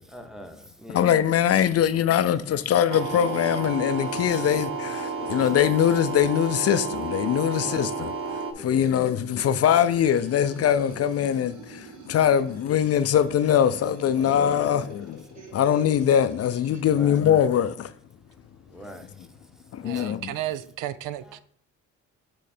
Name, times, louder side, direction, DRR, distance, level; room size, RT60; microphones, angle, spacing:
voice 1, 0.0-1.1 5.1-5.2 7.6-7.8 8.5-8.9 14.1-14.9 16.9-17.2 18.7-19.4 19.8-20.2, equal, ahead, 1.0 m, -43 dB
voice 2, 0.9-15.2 15.5-17.9 19.7-20.3, left 9 dB, 55° left, 0.5 m, -22 dB
sound 1, 2.9-8.5, right 4 dB, 45° right, 1.1 m, -31 dB
sound 2, 8.7-16.9, right 5 dB, 65° right, 1.7 m, -46 dB
voice 3, 19.8-21.4, right 13 dB, 85° right, 0.5 m, -33 dB
8.2 x 3.2 x 4.3 m
cardioid pair, 90°, 30 cm